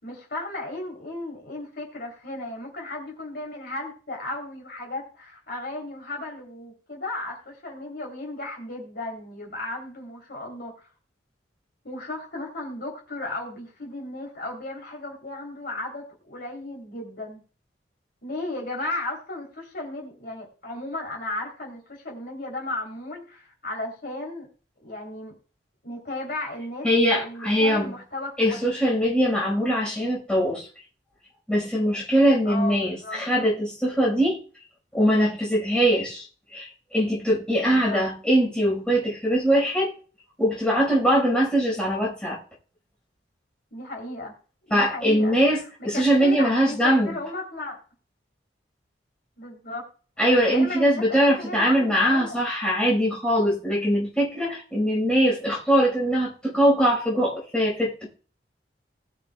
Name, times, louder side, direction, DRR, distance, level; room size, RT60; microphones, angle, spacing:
voice 1, 0.0-10.7 11.8-17.4 18.2-24.5 24.8-25.4 25.8-26.9 27.2-28.7 32.4-33.2 37.6-38.0 43.7-44.3 44.6-45.4 45.8-47.8 49.4-49.9 50.5-52.4, left 2 dB, 55° left, 3.2 m, -35 dB
voice 2, 26.8-27.9 28.4-30.7 31.5-34.4 34.9-36.3 36.5-39.9 40.4-42.4 44.7-47.2 50.2-58.1, equal, 5° left, 4.7 m, -22 dB
20.0 x 6.7 x 2.3 m
head